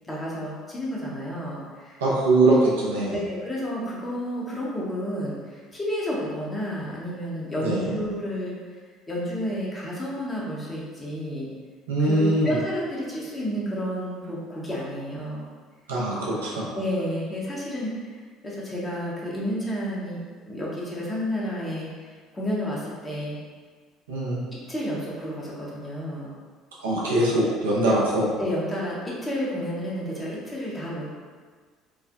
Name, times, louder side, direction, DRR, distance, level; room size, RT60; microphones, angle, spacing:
voice 1, 0.0-2.0 3.1-8.6 9.1-11.5 12.0-15.4 16.7-18.2 18.4-23.4 24.5-26.3 28.4-31.1, equal, 20° left, -5 dB, 0.9 m, -31 dB
voice 2, 2.0-3.2 7.6-7.9 11.9-12.5 15.9-16.7 24.1-24.5 26.8-28.3, right 2 dB, 85° right, -5 dB, 0.6 m, -22 dB
3.1 x 2.0 x 2.5 m, 1.5 s
hypercardioid pair, 65°, 0 cm